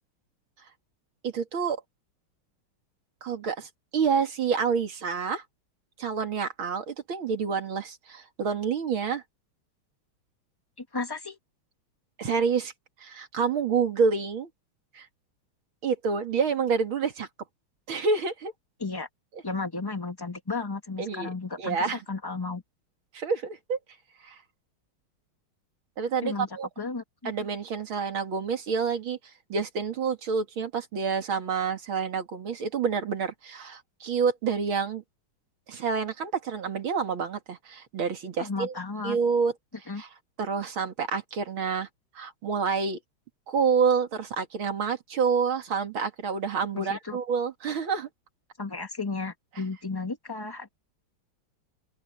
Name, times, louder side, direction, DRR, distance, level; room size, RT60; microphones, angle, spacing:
voice 1, 1.2-1.8 3.2-5.4 6.0-9.2 12.2-12.7 13.0-14.5 14.9-15.1 15.8-17.3 17.9-18.5 21.0-21.3 21.6-22.0 23.1-23.8 24.2-24.4 26.0-26.7 27.2-29.2 29.5-35.0 35.7-38.7 39.0-39.5 40.0-40.1 40.4-41.9 42.1-43.0 43.5-48.1, right 5 dB, 70° right, 3.0 m, -28 dB
voice 2, 10.8-11.4 18.8-19.1 19.4-22.6 26.2-26.5 26.8-27.3 38.4-39.2 39.9-40.0 46.7-47.2 48.6-50.7, left 3 dB, 10° left, 1.7 m, -34 dB
open air
omnidirectional pair, 2.3 m